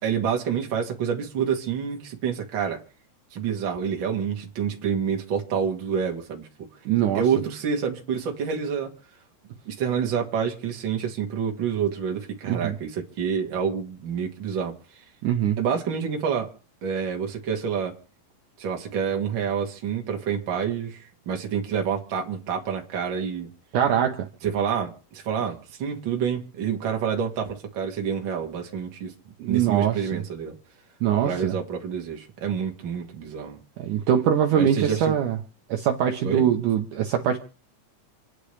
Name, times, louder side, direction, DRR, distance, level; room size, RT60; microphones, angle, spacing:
voice 1, 0.0-2.8 3.3-6.5 7.1-8.9 9.7-15.0 15.6-16.5 16.8-18.0 18.6-23.5 24.4-30.6 31.2-33.6 34.5-35.2 36.2-36.5, right 7 dB, 40° right, 2.1 m, -28 dB
voice 2, 6.9-7.2 12.5-12.7 15.2-15.6 23.7-24.3 29.4-30.2 31.0-31.5 33.8-35.4 35.7-37.4, right 9 dB, 70° right, 2.2 m, -23 dB
27.5 x 10.0 x 3.3 m
omnidirectional pair, 4.2 m